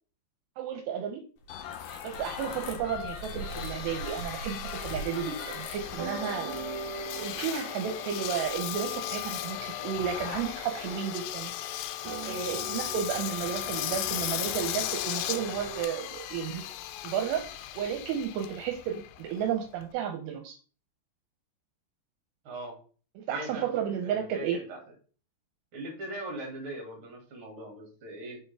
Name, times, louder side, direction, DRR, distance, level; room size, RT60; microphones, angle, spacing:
voice 1, 0.6-1.2 2.0-6.6 7.2-11.5 12.2-16.6 17.0-20.6 23.2-24.6, right 8 dB, 80° right, 5 dB, 2.7 m, -33 dB
sound 1, 1.4-7.3, left 2 dB, 65° left, 1.9 m, -41 dB
Engine, 1.5-19.9, left 13 dB, 80° left, 2.5 m, -37 dB
sound 2, 4.8-15.8, right 3 dB, 60° right, 2.8 m, -43 dB
voice 2, 22.4-22.7 23.3-24.8 25.7-28.4, right 1 dB, 35° right, 0 dB, 2.6 m, -40 dB
6.1 x 5.6 x 3.5 m, 0.40 s
omnidirectional pair, 5.1 m